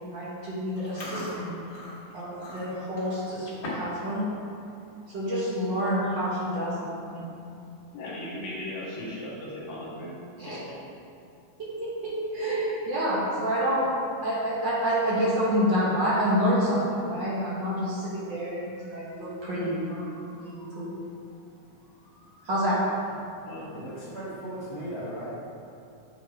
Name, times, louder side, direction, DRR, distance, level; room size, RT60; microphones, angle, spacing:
voice 1, 0.1-1.6 2.1-4.3 5.1-6.9 7.1-7.3 10.4-10.6 11.6-13.9 14.2-21.0 22.4-22.8, equal, 50° right, -7 dB, 1.5 m, -28 dB
Chewing mastication, 0.8-4.0 4.3-4.6 5.1-5.3 6.0-6.1 6.4-6.7 7.1-7.2 8.7-9.2, left 1 dB, 45° left, 1.8 m, -40 dB
voice 2, 7.9-10.1 10.4-10.5 23.4-23.7, left 1 dB, 65° left, -6 dB, 2.6 m, -37 dB
voice 3, 23.7-25.3, right 1 dB, 20° right, -12 dB, 0.7 m, -37 dB
8.3 x 4.5 x 3.6 m, 2.6 s
omnidirectional pair, 3.4 m